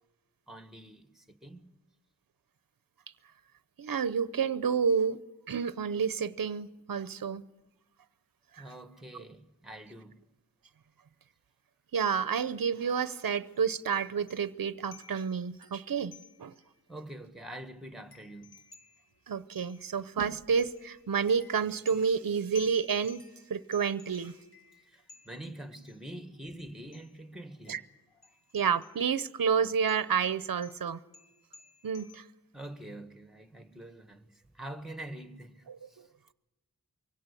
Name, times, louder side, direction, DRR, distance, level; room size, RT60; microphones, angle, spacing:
voice 1, 0.5-1.7 8.6-10.2 16.9-18.6 24.8-27.8 28.2-28.4 32.5-36.1, right 1 dB, ahead, 1.6 m, -45 dB
voice 2, 3.8-5.2 5.5-7.4 8.5-8.6 11.9-16.5 19.3-23.2 23.5-24.4 27.7-27.8 28.5-31.0 31.8-32.2 35.7-36.1, right 6 dB, 65° right, 0.7 m, -30 dB
sound 1, 13.1-13.2 13.6-13.7 14.3-14.6 14.9-16.7 17.1-17.2 17.4-20.2 20.6-26.0 26.9-27.2 27.6-29.2 29.7-32.2, left 5 dB, 85° left, 1.9 m, -56 dB
23.5 x 17.0 x 8.3 m
wide cardioid pair, 55°, 36 cm